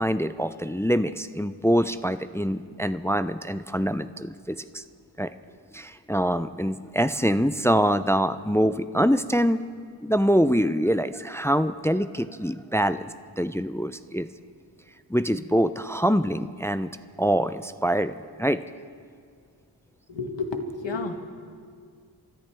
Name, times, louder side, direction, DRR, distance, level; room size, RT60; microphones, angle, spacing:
voice 1, 0.0-4.8 5.2-5.3 5.7-9.6 10.0-14.3 15.1-16.9 17.2-18.6, equal, 5° left, 12 dB, 0.4 m, -24 dB
voice 2, 20.1-21.1, left 3 dB, 85° left, 5 dB, 1.5 m, -30 dB
29.0 x 13.5 x 3.5 m, 2.1 s
wide cardioid pair, 60°, 43 cm